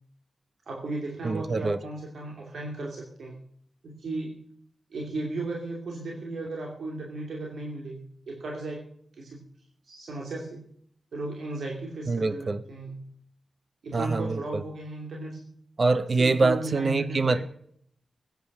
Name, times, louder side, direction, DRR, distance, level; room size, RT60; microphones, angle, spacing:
voice 1, 0.7-3.4 3.8-4.4 4.9-8.8 9.1-9.4 9.8-10.6 11.1-13.1 13.8-15.5 16.2-17.4, right 2 dB, 85° right, -1 dB, 2.7 m, -35 dB
voice 2, 1.2-1.8 12.1-12.6 13.9-14.6 15.8-17.4, right 3 dB, 50° right, 13 dB, 0.8 m, -25 dB
15.5 x 9.3 x 5.5 m, 0.64 s
wide cardioid pair, 80°, 0 cm